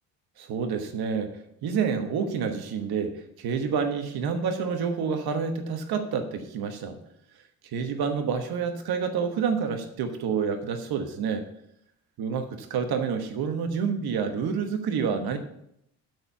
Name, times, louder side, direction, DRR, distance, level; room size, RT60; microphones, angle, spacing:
voice 1, 0.4-1.3 1.6-7.0 7.6-11.4 12.2-15.4, right 6 dB, 65° right, 6 dB, 1.2 m, -28 dB
12.0 x 4.6 x 6.8 m, 0.75 s
supercardioid pair, 60°, 40 cm